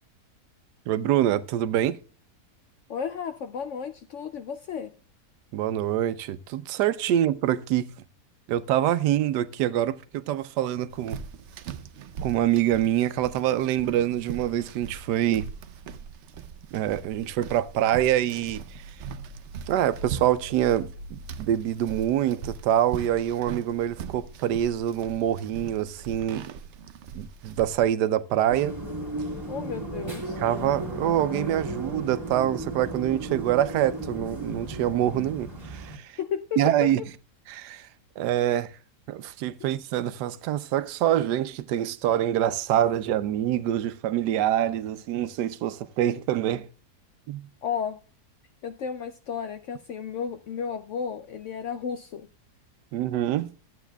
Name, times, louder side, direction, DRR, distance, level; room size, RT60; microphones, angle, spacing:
voice 1, 0.9-2.0 5.5-7.9 8.5-11.2 12.2-15.5 16.7-18.6 19.7-26.5 27.1-28.7 30.4-36.2 36.6-37.0 37.5-37.9 38.2-38.7 39.1-46.7 47.3-47.5 52.9-53.5, right 11 dB, 85° right, 1.2 m, -25 dB
voice 2, 2.9-4.9 29.5-30.4 36.2-36.6 39.6-39.7 47.6-48.0 48.6-52.3, left 7 dB, 70° left, 0.7 m, -33 dB
sound 1, 10.9-27.8, right 6 dB, 65° right, 0.7 m, -40 dB
sound 2, 28.5-36.0, right 1 dB, 15° right, 1.6 m, -35 dB
13.5 x 8.1 x 2.2 m
omnidirectional pair, 1.7 m